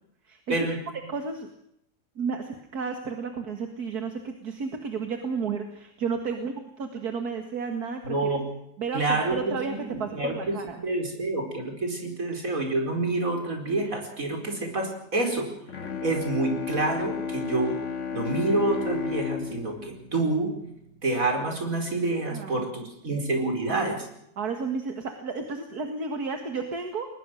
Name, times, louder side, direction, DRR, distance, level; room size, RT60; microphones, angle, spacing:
voice 1, 0.5-0.8 8.0-8.4 8.9-10.6 10.8-15.5 16.0-17.8 18.1-20.6 21.0-24.1, right 2 dB, 60° right, 3 dB, 5.1 m, -28 dB
voice 2, 1.1-1.5 2.2-8.3 8.8-9.7 10.0-10.8 22.3-22.6 23.1-23.2 24.4-27.1, right 5 dB, 80° right, 5 dB, 2.4 m, -32 dB
Bowed string instrument, 15.7-21.3, left 5 dB, 55° left, 1.8 m, -33 dB
22.0 x 20.5 x 6.4 m, 0.76 s
omnidirectional pair, 1.6 m